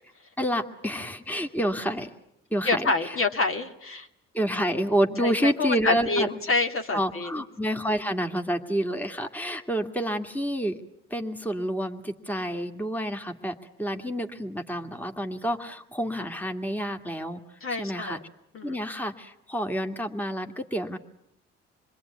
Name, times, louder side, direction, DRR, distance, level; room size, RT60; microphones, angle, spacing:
voice 1, 0.4-2.1 2.5-3.2 4.3-6.3 6.9-10.8 11.1-17.4 17.7-18.2 18.6-21.0, equal, 5° left, 5 dB, 2.1 m, -29 dB
voice 2, 2.6-4.1 5.2-7.4 17.6-18.2 18.5-18.8, left 3 dB, 45° left, 4 dB, 2.3 m, -27 dB
26.5 x 21.5 x 9.6 m, 0.80 s
supercardioid pair, 60°, 31 cm